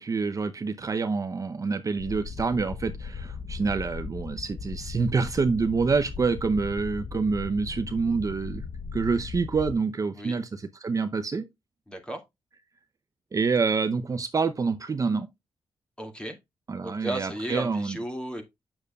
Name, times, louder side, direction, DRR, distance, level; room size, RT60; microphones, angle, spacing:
voice 1, 0.0-8.6 8.9-11.5 13.3-15.3 16.7-18.0, right 4 dB, 35° right, 0.6 m, -27 dB
sound 1, 2.0-9.7, left 5 dB, 50° left, 0.8 m, -38 dB
voice 2, 11.9-12.2 16.0-16.4 16.8-18.4, right 1 dB, 10° left, 2.2 m, -34 dB
8.8 x 6.6 x 2.3 m
cardioid pair, 110°, 10 cm